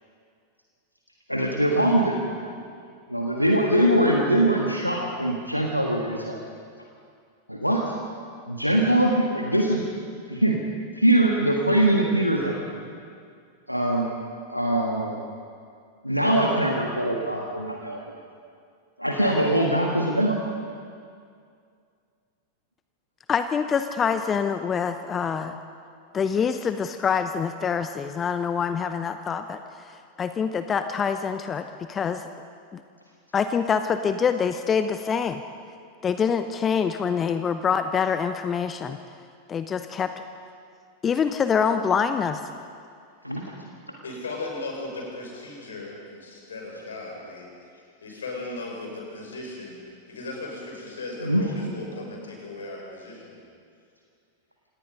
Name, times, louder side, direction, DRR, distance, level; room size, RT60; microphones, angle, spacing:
voice 1, 1.3-2.2 3.1-6.4 7.5-8.0 8.5-9.8 10.3-10.6 11.0-12.5 13.7-14.1 14.5-15.2 16.0-18.0 19.0-20.4 43.2-43.4 51.2-51.4, right 1 dB, 90° left, 0 dB, 1.7 m, -22 dB
voice 2, 23.3-25.6 26.1-32.3 32.7-32.8 33.3-35.4 36.0-39.0 39.5-40.1 41.0-42.4, left 6 dB, 20° left, 9 dB, 0.7 m, -25 dB
voice 3, 44.0-47.5 48.0-49.8 50.1-53.4, left 2 dB, 70° left, 0 dB, 5.5 m, -36 dB
27.0 x 18.5 x 5.4 m, 2.3 s
figure-of-eight pair, 90°, 0 cm